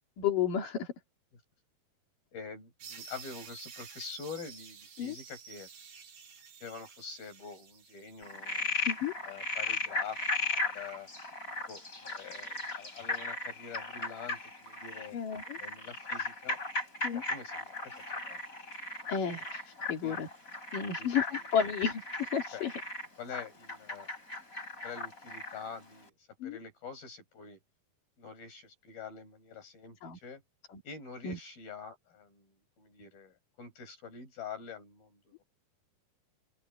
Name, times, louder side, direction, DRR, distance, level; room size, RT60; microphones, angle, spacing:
voice 1, 0.2-0.9 5.0-5.2 8.9-9.1 15.1-15.6 17.0-17.2 19.1-19.6 19.9-20.3 20.7-22.7 26.4-26.6 30.0-30.2 31.2-31.4, left 8 dB, 65° left, 4.5 m, -32 dB
voice 2, 2.3-5.7 6.6-8.7 9.2-11.1 11.7-15.2 15.6-16.6 17.1-18.4 20.0-20.2 21.0-21.1 21.6-21.7 22.5-22.7 23.2-24.1 24.8-26.1 26.4-27.6 28.2-30.4 30.8-35.4, left 5 dB, 85° left, 8.9 m, -46 dB
sound 1, 2.8-8.4, right 6 dB, 75° right, 4.9 m, -50 dB
Frog, 8.2-25.7, left 3 dB, 20° left, 7.3 m, -37 dB
open air
omnidirectional pair, 4.1 m